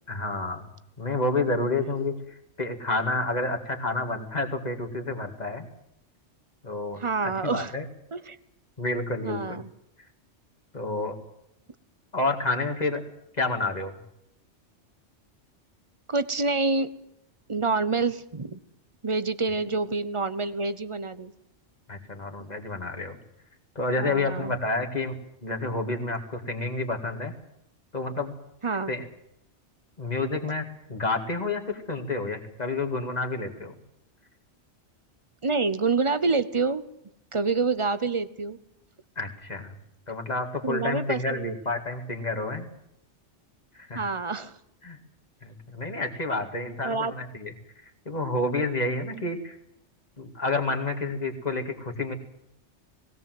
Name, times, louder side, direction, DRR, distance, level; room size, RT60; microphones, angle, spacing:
voice 1, 0.1-0.7 1.0-5.7 6.6-7.8 8.8-9.6 10.7-11.1 12.1-13.0 13.3-14.0 21.9-23.2 23.8-27.3 27.9-28.3 28.9-29.1 30.0-33.8 39.2-39.8 40.1-42.7 43.7-44.0 44.8-45.0 45.4-47.5 47.8-49.6 50.2-52.1, left 2 dB, 35° left, 3 dB, 2.4 m, -29 dB
voice 2, 7.0-7.7 8.1-8.4 9.2-9.7 16.1-16.9 17.5-18.6 19.0-21.3 24.0-24.5 28.6-28.9 35.4-36.8 37.3-38.6 40.6-41.6 43.9-44.6 46.8-47.1 49.2-49.4, right 4 dB, 30° right, 14 dB, 0.8 m, -27 dB
19.5 x 17.5 x 7.8 m, 0.79 s
omnidirectional pair, 1.2 m